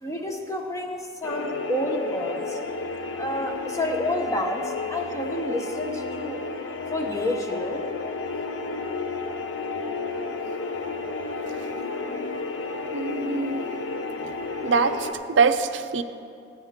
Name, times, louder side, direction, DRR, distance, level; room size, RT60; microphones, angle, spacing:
voice 1, 0.0-2.6 3.1-6.4 6.9-7.8, left 1 dB, 15° left, 2 dB, 0.8 m, -29 dB
sound 1, 1.2-15.1, left 3 dB, 75° left, 0.7 m, -32 dB
voice 2, 12.9-13.7 14.6-16.0, right 4 dB, 70° right, 9 dB, 0.5 m, -23 dB
14.0 x 9.3 x 3.6 m, 2.4 s
head